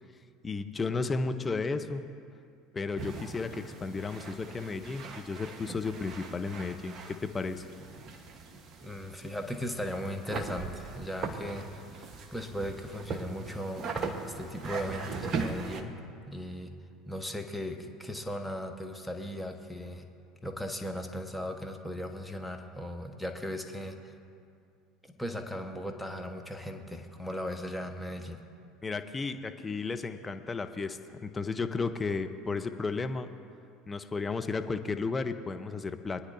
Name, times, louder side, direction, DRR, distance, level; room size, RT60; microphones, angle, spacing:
voice 1, 0.4-2.0 2.7-7.7 28.8-33.3 33.9-36.2, left 4 dB, 25° left, 8 dB, 0.8 m, -33 dB
sound 1, 3.0-15.8, right 4 dB, 40° right, 1.2 m, -40 dB
voice 2, 8.8-13.9 14.3-15.9 16.3-16.7 17.1-20.0 20.4-24.1 25.1-28.4, equal, ahead, 3 dB, 1.3 m, -37 dB
24.0 x 9.7 x 2.7 m, 2.4 s
hypercardioid pair, 70°, 0 cm